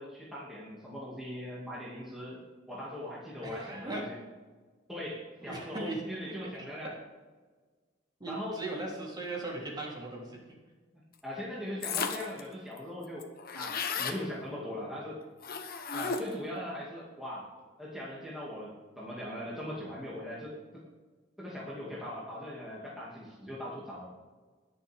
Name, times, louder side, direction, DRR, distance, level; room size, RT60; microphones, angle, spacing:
voice 1, 0.0-2.4 2.7-4.2 4.9-6.9 8.3-8.6 11.2-13.3 13.6-15.2 15.9-17.5 17.8-20.8 21.4-24.1, left 1 dB, ahead, -7 dB, 2.2 m, -40 dB
voice 2, 3.4-4.0 5.4-6.4 8.2-10.4, right 2 dB, 25° right, -3 dB, 3.2 m, -38 dB
sound 1, 11.8-12.4 12.8-12.9 13.0-14.2 15.4-16.4, left 5 dB, 55° left, 1.1 m, -34 dB
21.0 x 7.2 x 3.6 m, 1.4 s
head